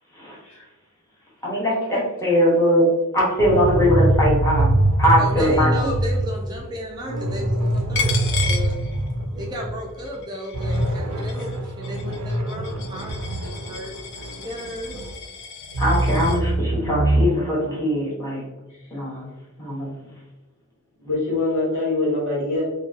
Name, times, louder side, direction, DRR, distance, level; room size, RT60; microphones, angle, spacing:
voice 1, 1.4-5.9 15.8-18.4 18.9-19.3 19.6-19.9, equal, 15° left, -6 dB, 0.8 m, -21 dB
sound 1, 3.4-9.8 10.1-10.2 10.5-15.2 15.6-17.3, right 1 dB, 90° right, 0.4 m, -23 dB
voice 2, 5.2-8.8 9.3-13.9 14.2-15.0, equal, 20° right, -1 dB, 0.3 m, -34 dB
Coin (dropping), 7.9-9.4 9.8-16.4, left 6 dB, 55° left, 0.3 m, -34 dB
voice 3, 21.0-22.6, left 2 dB, 75° left, -6 dB, 1.4 m, -24 dB
2.6 x 2.2 x 2.4 m, 1.1 s
head